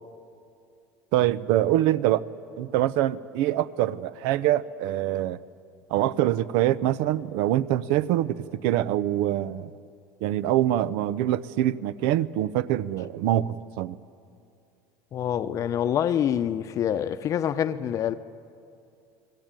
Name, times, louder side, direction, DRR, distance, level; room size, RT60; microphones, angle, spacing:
voice 1, 1.1-2.2 2.6-5.4 5.9-9.7 10.2-14.0, right 13 dB, 70° right, 0.8 m, -24 dB
voice 2, 15.1-18.1, left 9 dB, 40° left, 0.9 m, -26 dB
30.0 x 20.0 x 9.1 m
supercardioid pair, 135°, 9 cm